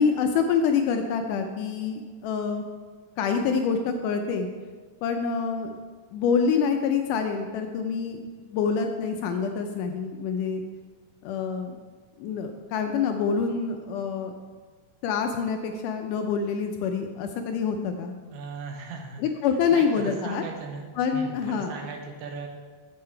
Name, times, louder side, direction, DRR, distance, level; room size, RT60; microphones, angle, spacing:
voice 1, 0.0-2.6 3.2-4.5 5.0-5.7 6.1-10.6 11.2-11.8 12.2-14.4 15.0-18.2 19.2-20.4 21.0-21.7, left 6 dB, 80° left, 5 dB, 1.9 m, -26 dB
voice 2, 18.3-19.2 19.7-20.9 21.1-22.5, right 4 dB, 75° right, 2 dB, 2.3 m, -37 dB
7.5 x 7.5 x 4.4 m, 1.5 s
omnidirectional pair, 4.0 m